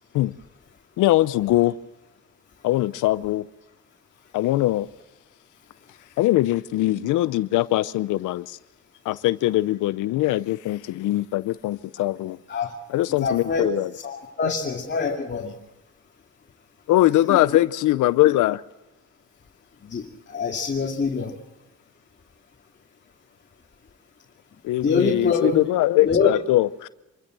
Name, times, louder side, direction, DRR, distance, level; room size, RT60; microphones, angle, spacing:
voice 1, 1.0-1.7 2.6-3.5 4.3-4.9 6.2-8.6 9.1-12.4 12.9-13.9 16.9-18.6 24.6-26.9, left 16 dB, 85° left, 0.6 m, -21 dB
voice 2, 13.1-13.7 13.9-15.5 17.3-17.4 19.8-21.4 24.8-25.6 26.0-26.3, left 5 dB, 35° left, 2.4 m, -25 dB
26.5 x 14.5 x 7.6 m
cardioid pair, 90°, 30 cm